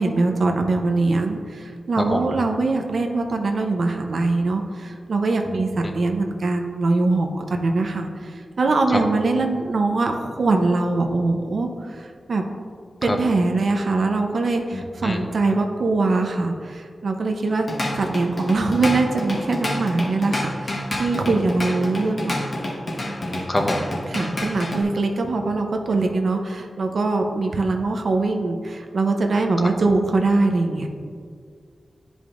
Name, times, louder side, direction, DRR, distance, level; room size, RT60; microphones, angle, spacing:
voice 1, 0.0-12.5 13.0-22.4 24.1-30.9, right 3 dB, 75° right, 4 dB, 0.7 m, -22 dB
voice 2, 2.0-2.3 5.5-5.6 5.8-5.9 8.9-9.0 13.0-13.2 14.7-15.2 23.2-23.8, left 1 dB, 35° left, 3 dB, 0.8 m, -26 dB
Drum kit / Drum, 17.5-24.8, left 1 dB, 55° left, 1.2 m, -28 dB
10.0 x 5.1 x 2.5 m, 2.1 s
wide cardioid pair, 70°, 0 cm